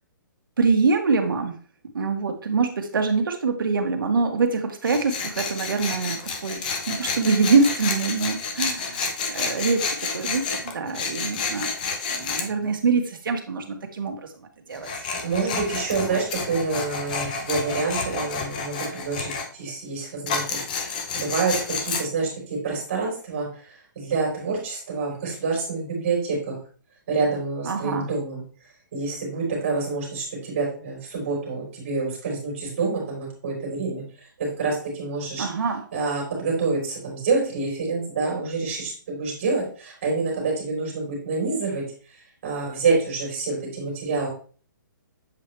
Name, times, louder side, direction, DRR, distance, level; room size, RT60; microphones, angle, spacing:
voice 1, 0.6-1.5 1.9-9.8 10.1-10.4 10.7-11.7 12.1-14.1 14.7-14.9 16.0-16.2 27.6-28.1 35.4-35.8, right 4 dB, 80° right, 5 dB, 1.6 m, -24 dB
Tools, 4.8-12.5 14.7-19.5 20.3-22.0, left 5 dB, 25° left, 0.8 m, -30 dB
voice 2, 15.2-26.6 27.1-28.4 28.9-34.0 34.4-35.5 35.9-41.8 42.4-44.3, right 4 dB, 30° right, -2 dB, 3.5 m, -27 dB
7.6 x 4.8 x 3.3 m, 0.42 s
hypercardioid pair, 180°, 11 cm